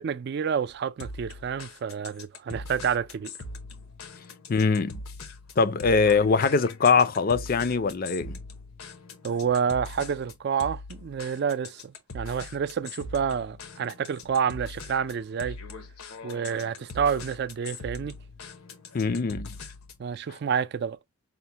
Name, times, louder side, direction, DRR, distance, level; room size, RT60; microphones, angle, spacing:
voice 1, 0.0-3.3 9.2-15.6 16.2-18.2 20.0-21.0, right 7 dB, 50° right, 0.3 m, -29 dB
sound 1, 1.0-20.1, left 2 dB, 85° left, 0.9 m, -42 dB
voice 2, 4.5-5.0 5.6-8.4 18.9-19.5, left 4 dB, 40° left, 0.4 m, -22 dB
5.6 x 2.1 x 2.7 m
head